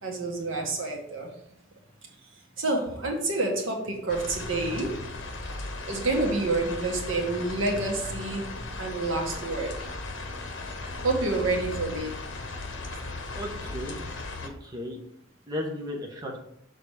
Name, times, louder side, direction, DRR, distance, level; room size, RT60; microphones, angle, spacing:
voice 1, 0.0-1.3 2.6-5.0 5.9-8.5 8.8-9.9 11.0-12.2, right 2 dB, 80° right, 1 dB, 1.6 m, -28 dB
sound 1, 4.1-14.5, left 2 dB, 65° left, 1.0 m, -37 dB
voice 2, 13.3-14.0 14.4-15.0 15.5-16.4, left 1 dB, 20° right, -1 dB, 1.1 m, -35 dB
6.7 x 4.1 x 4.8 m, 0.70 s
head